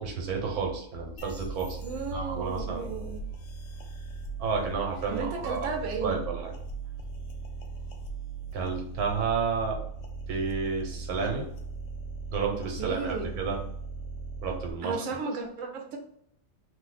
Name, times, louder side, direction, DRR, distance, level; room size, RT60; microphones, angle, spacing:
voice 1, 0.0-1.8 2.1-2.9 4.4-5.7 6.0-6.5 8.5-9.8 10.3-11.5 12.3-13.6 14.4-15.2, right 5 dB, 90° right, 1 dB, 1.2 m, -31 dB
sound 1, 1.2-14.7, right 3 dB, 70° left, 0.9 m, -38 dB
voice 2, 1.8-3.2 5.1-6.2 12.8-13.3 14.8-16.0, right 4 dB, 70° right, 2 dB, 1.0 m, -34 dB
2.6 x 2.1 x 3.9 m, 0.67 s
omnidirectional pair, 1.5 m